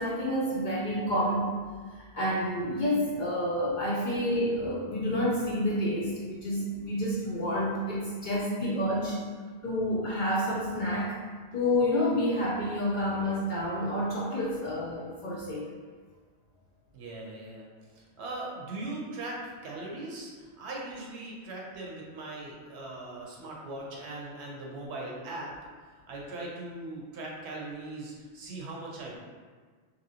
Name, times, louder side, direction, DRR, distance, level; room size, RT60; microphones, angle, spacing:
voice 1, 0.0-1.5 1.9-9.2 9.6-11.1 11.5-15.7, left 1 dB, 55° left, -5 dB, 0.6 m, -29 dB
voice 2, 16.9-17.6 18.2-25.5 26.1-29.2, right 2 dB, 75° right, -3 dB, 0.9 m, -39 dB
2.8 x 2.7 x 2.7 m, 1.5 s
omnidirectional pair, 1.2 m